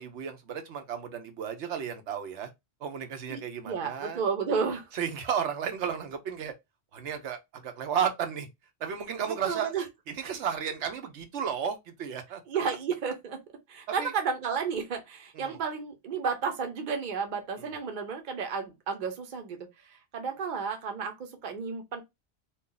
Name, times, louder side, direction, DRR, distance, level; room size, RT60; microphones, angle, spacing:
voice 1, 0.0-2.5 2.8-4.2 4.9-6.5 6.9-8.5 8.8-9.7 10.1-12.4 14.0-14.1 15.3-15.6 17.6-17.7, right 8 dB, 90° right, 1.0 m, -33 dB
voice 2, 3.3-4.9 9.3-9.8 12.5-13.4 13.7-19.6 19.9-22.0, right 5 dB, 50° right, 0.8 m, -32 dB
2.6 x 2.4 x 3.7 m
omnidirectional pair, 1.1 m